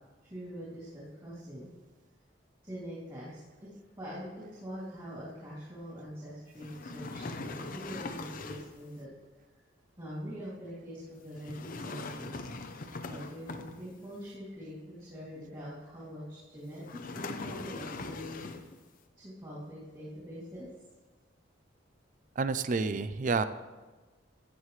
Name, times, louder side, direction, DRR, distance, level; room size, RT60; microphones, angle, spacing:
voice 1, 0.2-1.7 2.6-3.7 4.0-9.1 10.0-12.8 13.1-18.4 19.2-20.7, equal, 25° right, -10 dB, 3.0 m, -44 dB
sound 1, 6.6-8.8 11.4-14.1 16.8-18.8, left 3 dB, 50° left, 0.7 m, -41 dB
voice 2, 22.4-23.4, right 4 dB, 45° right, 13 dB, 0.4 m, -29 dB
14.5 x 8.3 x 3.2 m, 1.2 s
head